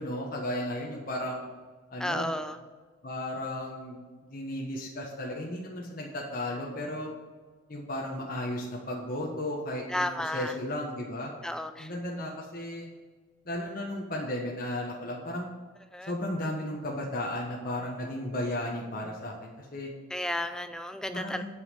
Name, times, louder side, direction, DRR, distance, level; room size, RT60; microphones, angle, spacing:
voice 1, 0.0-1.4 1.9-2.3 3.0-7.1 7.7-11.3 11.8-12.9 13.4-15.5 16.1-19.9 21.1-21.4, left 1 dB, 45° left, -3 dB, 1.4 m, -34 dB
voice 2, 2.0-2.6 9.9-10.5 11.4-11.9 15.9-16.1 20.1-21.4, left 1 dB, 5° left, 9 dB, 0.3 m, -32 dB
9.5 x 5.5 x 6.8 m, 1.4 s
head